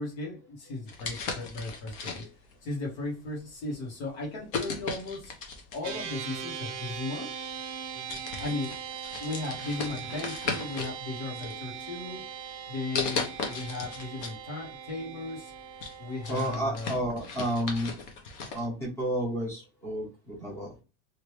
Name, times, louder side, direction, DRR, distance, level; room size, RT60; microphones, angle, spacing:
voice 1, 0.0-2.2 2.6-5.3 5.7-7.3 8.4-8.7 9.2-12.3 12.7-15.5 16.0-16.9, left 2 dB, 80° left, -2 dB, 1.5 m, -36 dB
sound 1, 0.9-2.5 3.2-3.5 4.5-6.1 7.1-7.2 7.7-7.8 8.1-11.0 11.3-12.1 12.9-14.4 14.7-14.8 15.3-18.6, left 4 dB, 55° left, 0.9 m, -36 dB
sound 2, 5.8-16.7, right 7 dB, 30° right, 0.4 m, -40 dB
voice 2, 16.3-17.9 18.5-20.7, equal, 10° left, -3 dB, 1.0 m, -31 dB
3.1 x 2.8 x 3.2 m, 0.30 s
supercardioid pair, 180°, 33 cm